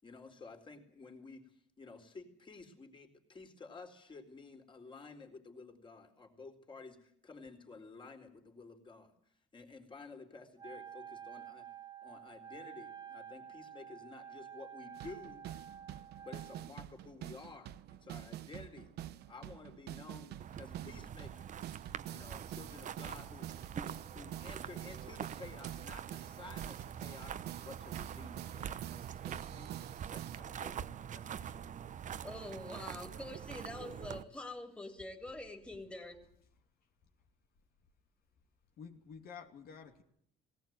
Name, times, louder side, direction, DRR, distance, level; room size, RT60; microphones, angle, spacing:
voice 1, 0.0-9.1 9.5-11.7 12.0-15.5 16.2-18.9 19.3-21.5 22.1-23.5 23.7-27.4 27.6-29.7 30.0-31.7, left 4 dB, 30° left, 4.2 m, -52 dB
Wind instrument woodwind instrument, 10.6-16.7, right 8 dB, 25° right, 1.6 m, -50 dB
sound 1, 14.9-30.4, right 12 dB, 75° right, 1.0 m, -48 dB
sound 2, 20.4-34.2, right 9 dB, 50° right, 1.0 m, -45 dB
voice 2, 31.9-36.2, left 2 dB, 5° left, 3.3 m, -45 dB
voice 3, 38.8-40.0, left 6 dB, 65° left, 2.7 m, -50 dB
18.5 x 18.0 x 9.4 m
cardioid pair, 110°, 17 cm